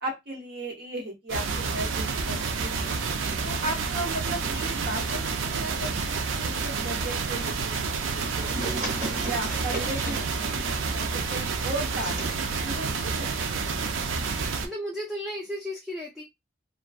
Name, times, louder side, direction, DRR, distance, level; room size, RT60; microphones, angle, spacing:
voice 1, 0.0-2.8 3.4-8.9 9.3-10.5 10.9-13.3, right 1 dB, 55° right, 0 dB, 0.9 m, -36 dB
sound 1, 1.3-14.7, right 4 dB, 85° right, 0.4 m, -29 dB
sound 2, 7.4-14.0, right 1 dB, 40° right, 0.9 m, -38 dB
voice 2, 14.4-16.2, equal, ahead, -3 dB, 0.3 m, -34 dB
2.5 x 2.1 x 2.3 m, 0.20 s
head